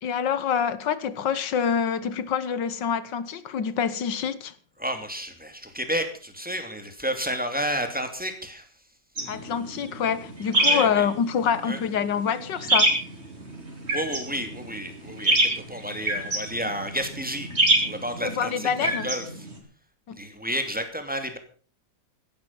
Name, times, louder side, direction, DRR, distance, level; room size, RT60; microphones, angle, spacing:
voice 1, 0.0-4.5 9.3-12.9 18.2-19.1 20.1-20.2, left 7 dB, 90° left, 1.9 m, -26 dB
voice 2, 4.8-8.7 10.6-11.0 11.6-11.8 13.9-17.5 17.8-19.5 20.1-21.4, equal, 5° right, 2.6 m, -31 dB
sound 1, 9.2-19.6, right 1 dB, 35° right, 4.1 m, -27 dB
16.0 x 12.5 x 5.5 m
omnidirectional pair, 1.9 m